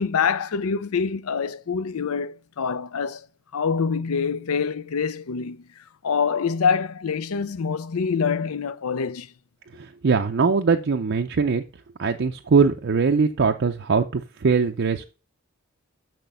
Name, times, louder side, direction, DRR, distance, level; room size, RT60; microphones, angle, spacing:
voice 1, 0.0-3.3 3.5-5.7 6.0-9.3, left 6 dB, 75° left, 0.5 m, -25 dB
voice 2, 9.7-11.7 12.0-15.0, right 5 dB, 55° right, 0.5 m, -21 dB
6.5 x 6.1 x 6.7 m
head